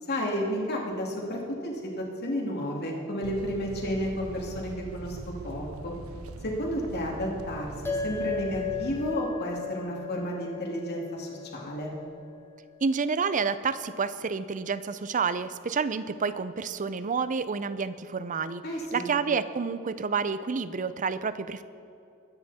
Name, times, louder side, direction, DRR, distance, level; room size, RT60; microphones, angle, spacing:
voice 1, 0.0-5.2 5.4-5.9 6.4-11.9 18.6-19.1, equal, 50° left, -1 dB, 2.6 m, -32 dB
sound 1, 3.2-9.2, right 2 dB, 75° right, 0.7 m, -42 dB
sound 2, 7.8-12.5, left 6 dB, 10° left, 1.3 m, -36 dB
voice 2, 12.8-18.6 18.9-21.6, right 5 dB, 35° right, 14 dB, 0.5 m, -29 dB
22.0 x 9.7 x 4.2 m, 2.7 s
head